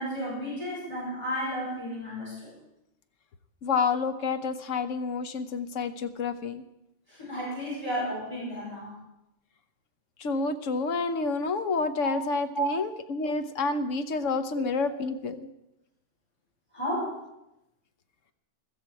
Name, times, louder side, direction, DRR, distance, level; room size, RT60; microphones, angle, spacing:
voice 1, 0.0-2.5 7.1-8.9 12.0-12.1 12.5-12.7 14.5-14.6 16.7-17.2, right 1 dB, 25° left, -7 dB, 6.1 m, -32 dB
voice 2, 3.6-6.6 10.2-15.5, left 4 dB, 80° left, 10 dB, 1.2 m, -29 dB
15.5 x 13.5 x 4.7 m, 0.87 s
omnidirectional pair, 1.3 m